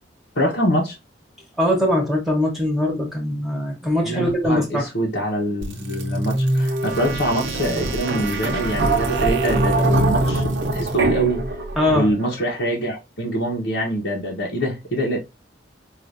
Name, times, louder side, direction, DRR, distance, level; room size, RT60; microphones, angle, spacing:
voice 1, 0.3-1.0 4.0-11.4 11.9-15.2, equal, 80° left, 1.0 m, -24 dB
voice 2, 1.6-4.9 11.8-12.1, left 1 dB, ahead, 1.0 m, -21 dB
sound 1, 5.6-12.3, right 2 dB, 80° right, 0.8 m, -23 dB
4.8 x 2.5 x 2.5 m
head